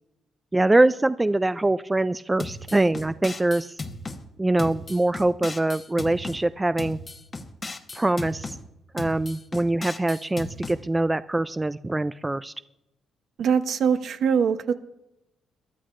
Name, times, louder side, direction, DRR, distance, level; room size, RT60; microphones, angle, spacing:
voice 1, 0.5-3.7 4.4-7.0 7.9-8.6 8.9-12.5, right 2 dB, 15° right, 13 dB, 0.3 m, -23 dB
sound 1, 2.4-4.2 4.6-6.4 6.8-8.6 9.0-10.8, left 3 dB, 30° left, 1.1 m, -36 dB
voice 2, 13.4-14.7, right 7 dB, 65° right, 9 dB, 0.9 m, -22 dB
22.0 x 12.0 x 2.5 m, 0.91 s
cardioid pair, 90°, 0 cm